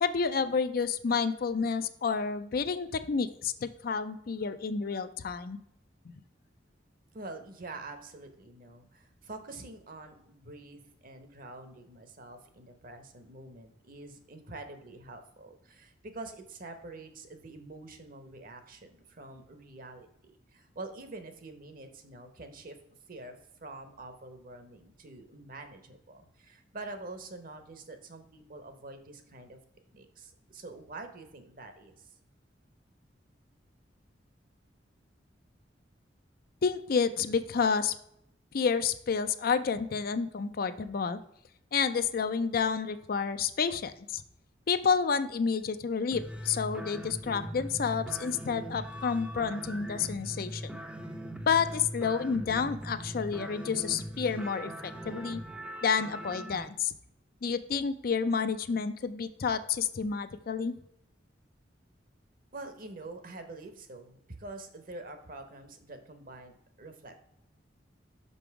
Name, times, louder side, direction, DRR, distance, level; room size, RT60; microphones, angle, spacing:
voice 1, 0.0-5.6 6.1-6.2 36.6-37.9 38.5-41.2 41.7-44.2 44.7-50.7 51.5-55.4 55.8-56.9 57.4-60.8, left 5 dB, 55° left, 11 dB, 0.4 m, -30 dB
voice 2, 7.1-20.1 20.5-22.8 23.1-23.3 23.6-29.6 29.9-32.1 62.5-67.1, right 2 dB, 50° right, 7 dB, 1.0 m, -46 dB
sound 1, 46.1-56.7, equal, 5° right, 0.5 m, -41 dB
5.9 x 5.4 x 4.7 m, 0.75 s
head